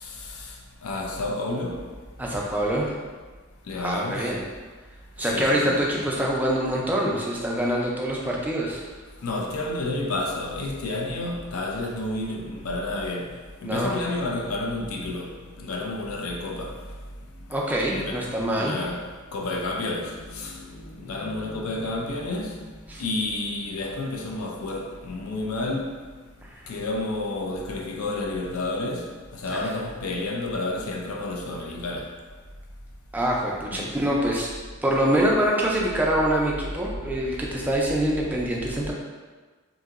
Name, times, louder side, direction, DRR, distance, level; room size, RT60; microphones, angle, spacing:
voice 1, 0.0-1.9 3.6-4.4 5.2-5.8 9.2-16.9 18.0-26.0 26.7-32.2 33.7-34.0, left 2 dB, 90° left, 0.4 m, -31 dB
voice 2, 2.2-3.0 3.8-4.4 5.2-8.8 13.6-13.9 17.5-18.8 22.9-23.0 26.4-26.5 29.5-29.7 33.1-34.5 34.8-38.9, right 1 dB, 10° right, 0.3 m, -25 dB
2.8 x 2.6 x 2.4 m
head